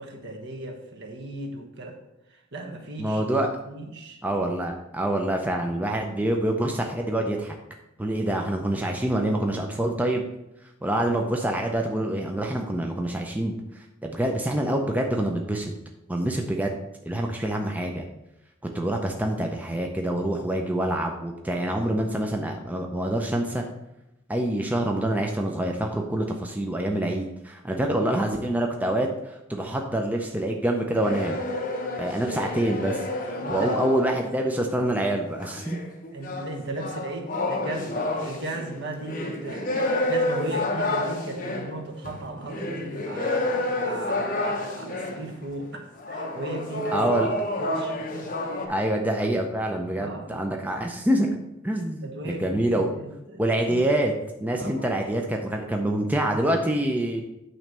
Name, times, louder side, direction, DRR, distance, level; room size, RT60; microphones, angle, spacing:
voice 1, 0.0-2.0 2.3-3.2 3.6-4.2 8.2-8.4 33.4-33.7 36.1-47.3 47.6-48.4 48.6-48.8 49.9-50.4 51.7-53.8 54.5-54.9, right 1 dB, 60° right, 2 dB, 1.3 m, -37 dB
voice 2, 3.0-3.5 4.2-7.6 8.0-10.2 10.8-15.7 16.1-16.7 17.1-18.0 18.7-23.6 24.3-31.4 32.0-35.8 46.9-47.3 48.7-51.3 51.6-52.9 53.4-54.1 54.4-57.2, right 1 dB, 10° right, 2 dB, 0.5 m, -26 dB
sound 1, 30.9-34.4 35.4-45.3 46.0-48.7, left 1 dB, 40° left, 1.0 m, -29 dB
9.1 x 3.2 x 6.6 m, 0.90 s
head